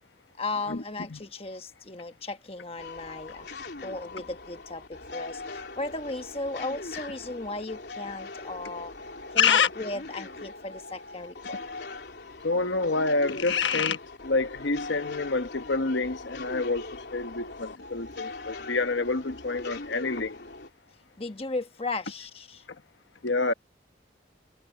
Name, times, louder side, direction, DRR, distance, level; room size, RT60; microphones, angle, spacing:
voice 1, 0.4-3.5 3.8-8.9 9.3-11.6 21.2-22.6, left 2 dB, 30° left, 1.3 m, -36 dB
sound 1, 2.8-20.7, left 3 dB, 70° left, 3.4 m, -41 dB
voice 2, 9.4-9.7 12.4-14.0 14.2-20.3 23.2-23.5, left 4 dB, 90° left, 1.2 m, -27 dB
head